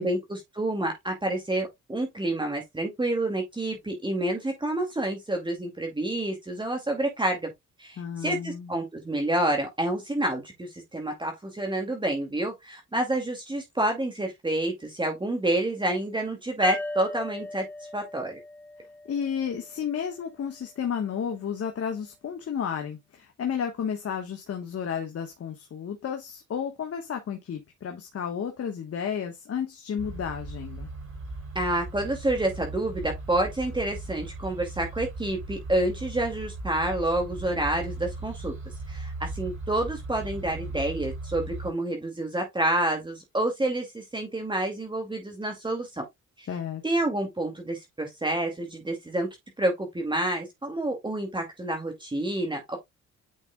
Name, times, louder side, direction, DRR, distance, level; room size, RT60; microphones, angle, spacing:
voice 1, 0.0-7.5 7.8-17.7 17.9-18.4 31.5-38.5 38.9-46.1 46.4-46.5 46.8-49.3 49.6-52.8, right 1 dB, 15° right, 2.4 m, -28 dB
voice 2, 8.0-8.7 19.1-30.9 46.5-46.8, left 7 dB, 50° left, 1.5 m, -32 dB
sound 1, 16.6-20.1, left 2 dB, 5° left, 1.3 m, -38 dB
sound 2, 30.0-41.7, right 2 dB, 45° right, 4.9 m, -38 dB
9.3 x 5.1 x 2.3 m
cardioid pair, 90°, 30 cm